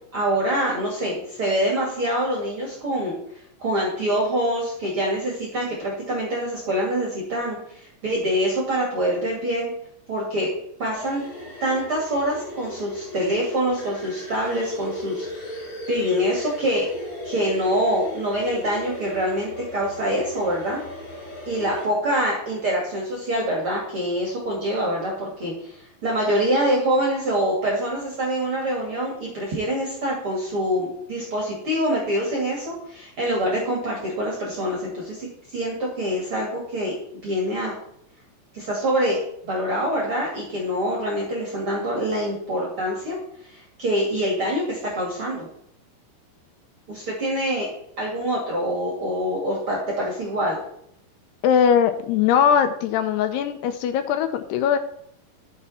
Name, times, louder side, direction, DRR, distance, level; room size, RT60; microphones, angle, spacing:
voice 1, 0.1-3.1 3.6-9.7 10.1-10.5 10.8-11.2 11.6-16.9 17.2-20.8 21.5-35.3 35.5-36.9 37.2-37.7 38.5-39.2 39.4-43.2 43.5-45.5 46.9-47.7 48.0-50.6, equal, 40° right, -2 dB, 2.4 m, -25 dB
sound 1, 10.9-21.9, equal, 40° left, 3.9 m, -36 dB
voice 2, 51.4-54.8, left 8 dB, 80° left, 9 dB, 2.7 m, -20 dB
13.0 x 6.5 x 4.3 m, 0.73 s
omnidirectional pair, 5.0 m